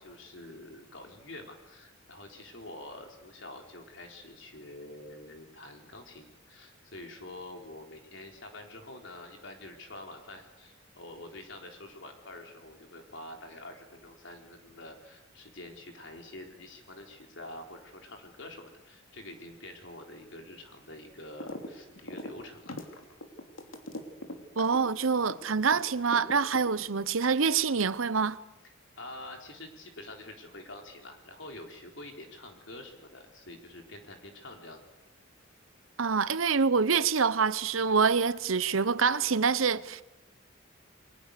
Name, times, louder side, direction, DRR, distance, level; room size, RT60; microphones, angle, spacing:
voice 1, 0.0-22.8 28.6-34.8, left 1 dB, 65° left, 4.2 m, -47 dB
sound 1, 21.4-21.7 22.0-25.8 26.1-27.0, left 1 dB, 90° left, 3.1 m, -40 dB
voice 2, 24.6-28.4 36.0-40.0, right 5 dB, 85° right, 0.9 m, -26 dB
29.5 x 22.0 x 6.8 m
head